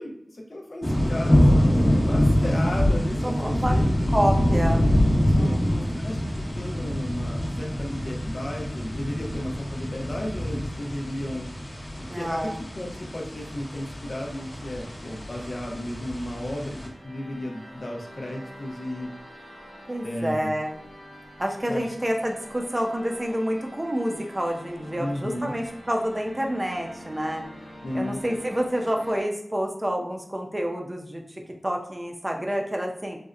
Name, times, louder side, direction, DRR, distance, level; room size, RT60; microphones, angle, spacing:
voice 1, 0.0-4.1 5.3-5.6 6.0-6.2 6.6-11.5 12.0-16.8 17.0-19.1 20.0-20.5 21.7-21.9 25.0-25.6 27.8-28.2, left 1 dB, 55° left, -1 dB, 0.5 m, -34 dB
sound 1, 0.8-16.9, equal, 25° left, 0.9 m, -25 dB
voice 2, 3.2-3.7 4.1-4.9 5.3-6.1 12.1-12.6 19.9-20.7 21.4-27.4 27.9-31.2 31.6-33.2, equal, 25° right, 2 dB, 0.6 m, -28 dB
sound 2, 14.0-29.2, equal, 85° right, 1.3 m, -46 dB
4.1 x 2.1 x 2.4 m, 0.73 s
wide cardioid pair, 55°, 0 cm